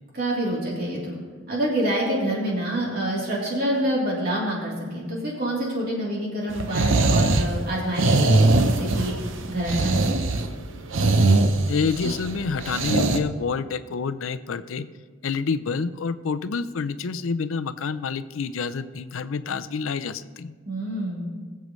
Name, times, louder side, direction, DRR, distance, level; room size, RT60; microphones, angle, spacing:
voice 1, 0.1-1.2 1.5-9.1 9.5-10.2 20.6-21.3, right 1 dB, 50° right, -4 dB, 3.3 m, -27 dB
sound 1, 6.5-13.2, right 2 dB, 70° right, 0.8 m, -21 dB
voice 2, 11.7-14.9 15.2-20.5, left 5 dB, 85° left, 13 dB, 0.5 m, -28 dB
21.0 x 7.6 x 3.2 m, 1.5 s
head